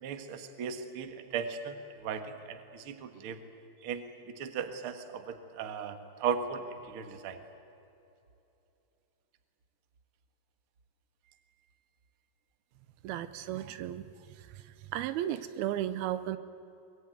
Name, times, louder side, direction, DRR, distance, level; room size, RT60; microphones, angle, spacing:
voice 1, 0.0-1.8 2.0-2.2 2.5-3.4 3.8-5.9 6.2-7.4, right 6 dB, 50° right, 8 dB, 1.8 m, -36 dB
voice 2, 13.0-14.0 14.9-16.4, right 12 dB, 80° right, 13 dB, 2.7 m, -34 dB
23.5 x 22.0 x 9.3 m, 2.8 s
omnidirectional pair, 4.4 m